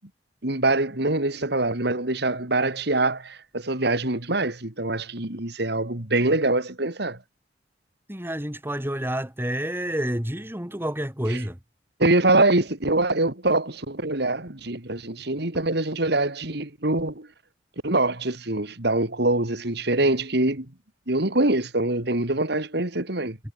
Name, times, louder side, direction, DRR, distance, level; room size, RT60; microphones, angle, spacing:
voice 1, 0.4-7.2 11.3-11.4 12.0-17.3 17.8-20.7 21.1-23.4, right 2 dB, 60° right, 3.1 m, -24 dB
voice 2, 8.1-11.6, right 1 dB, 10° right, 3.8 m, -29 dB
head